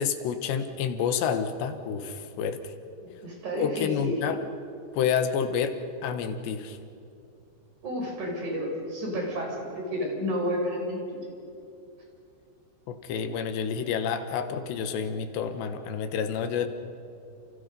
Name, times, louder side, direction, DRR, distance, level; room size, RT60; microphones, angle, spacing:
voice 1, 0.0-2.7 3.5-4.4 4.9-6.8 12.9-16.7, left 7 dB, 75° left, 8 dB, 3.3 m, -29 dB
voice 2, 3.0-4.2 7.8-11.2, equal, 40° right, 0 dB, 6.5 m, -31 dB
29.5 x 29.5 x 5.4 m, 2.6 s
omnidirectional pair, 5.2 m